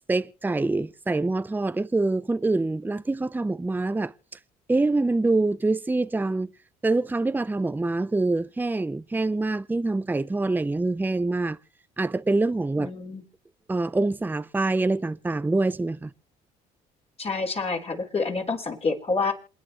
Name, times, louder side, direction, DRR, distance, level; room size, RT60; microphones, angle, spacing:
voice 1, 0.1-4.1 4.7-6.5 6.8-11.6 12.0-12.9 13.7-16.1, right 2 dB, 10° right, 0.7 m, -25 dB
voice 2, 12.8-13.2 17.2-19.3, left 4 dB, 35° left, 3.8 m, -28 dB
27.5 x 9.3 x 3.1 m
supercardioid pair, 65°, 17 cm